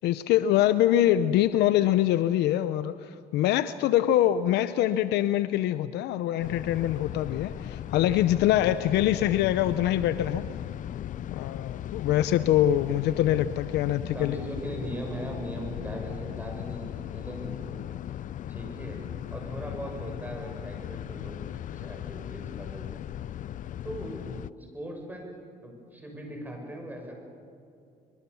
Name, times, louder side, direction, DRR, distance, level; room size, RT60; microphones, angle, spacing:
voice 1, 0.0-10.4 11.3-14.4, left 12 dB, 85° left, 12 dB, 0.8 m, -24 dB
sound 1, 6.4-24.5, left 11 dB, 50° left, 0.5 m, -37 dB
voice 2, 14.1-17.8 18.5-19.0 19.3-23.0 23.8-25.3 25.6-27.2, right 1 dB, 10° right, 1 dB, 7.2 m, -39 dB
24.0 x 24.0 x 7.2 m, 2.5 s
cardioid pair, 110°, 17 cm